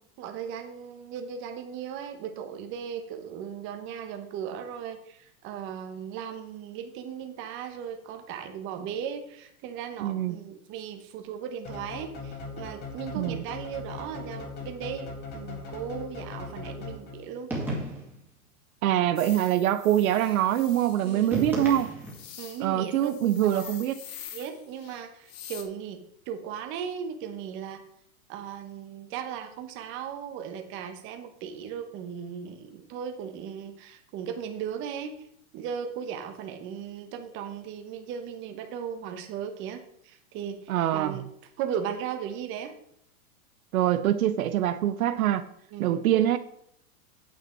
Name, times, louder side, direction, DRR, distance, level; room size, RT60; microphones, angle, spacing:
voice 1, 0.2-17.5 21.0-21.5 22.4-23.1 23.4-23.8 24.3-27.8 28.3-35.1 35.5-41.2 41.6-42.7 45.7-46.0, right 8 dB, 25° right, 6 dB, 1.2 m, -37 dB
voice 2, 10.0-10.4 13.2-13.4 18.8-21.9 22.6-24.0 40.7-41.2 43.7-45.4 45.8-46.4, right 12 dB, 70° right, 12 dB, 0.8 m, -24 dB
sound 1, 11.6-17.4, left 3 dB, 20° left, 1.8 m, -40 dB
sound 2, 17.5-18.2 21.3-22.3, right 1 dB, 5° right, 2.2 m, -33 dB
sound 3, 19.2-25.6, left 9 dB, 60° left, 1.8 m, -46 dB
9.1 x 8.1 x 4.5 m, 0.71 s
supercardioid pair, 160°, 44 cm